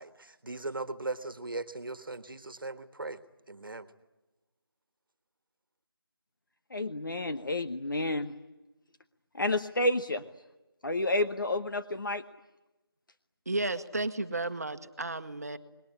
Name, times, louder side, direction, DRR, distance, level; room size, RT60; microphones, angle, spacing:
voice 1, 0.0-3.2 3.5-3.9, right 2 dB, 60° right, 10 dB, 1.5 m, -38 dB
voice 2, 6.7-8.3 9.3-10.2 10.8-12.2, left 2 dB, 55° left, 9 dB, 1.0 m, -30 dB
voice 3, 13.5-15.6, right 2 dB, 40° right, 9 dB, 1.2 m, -33 dB
28.0 x 21.0 x 9.8 m, 1.1 s
figure-of-eight pair, 170°, 13 cm